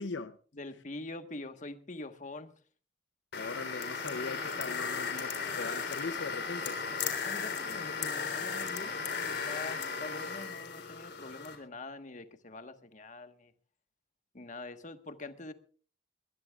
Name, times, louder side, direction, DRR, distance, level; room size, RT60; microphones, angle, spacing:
voice 1, 0.0-0.4 3.3-6.8, left 4 dB, 80° left, 0.7 m, -40 dB
voice 2, 0.5-2.5 7.1-8.9 9.2-13.5 14.3-15.5, left 2 dB, 45° left, 1.4 m, -44 dB
sound 1, 3.3-11.6, left 5 dB, 60° left, 3.6 m, -36 dB
22.5 x 19.5 x 2.4 m
head